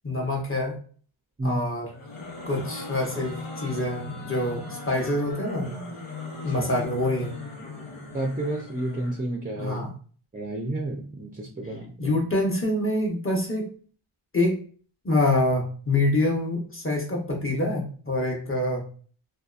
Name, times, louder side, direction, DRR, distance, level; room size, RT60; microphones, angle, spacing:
voice 1, 0.0-0.8 1.4-1.9 2.5-5.7 6.4-7.4 9.6-9.9 12.0-13.7 14.3-14.6 15.0-18.9, left 1 dB, 25° left, -1 dB, 1.0 m, -26 dB
sound 1, 1.9-9.2, left 3 dB, 85° left, 1.0 m, -38 dB
voice 2, 6.3-6.6 8.1-9.8 10.3-12.2, right 1 dB, 20° right, 1 dB, 0.5 m, -31 dB
2.7 x 2.3 x 2.4 m, 0.42 s
wide cardioid pair, 65°, 49 cm